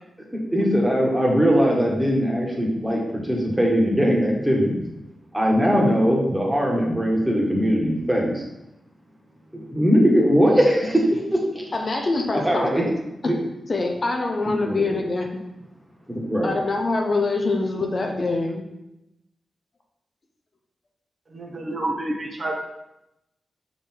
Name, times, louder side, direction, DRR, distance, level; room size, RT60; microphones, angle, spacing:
voice 1, 0.5-4.8 5.3-8.4 9.5-11.6 12.3-12.8 13.2-13.3 14.6-15.0 16.1-16.5, equal, 5° right, -2 dB, 1.6 m, -20 dB
voice 2, 11.7-12.9 13.2-13.3 13.7-15.3 16.4-18.6, left 3 dB, 40° left, 2 dB, 0.8 m, -24 dB
voice 3, 21.3-22.6, right 1 dB, 40° right, 1 dB, 0.9 m, -28 dB
6.5 x 3.9 x 4.5 m, 0.90 s
wide cardioid pair, 110°, 0 cm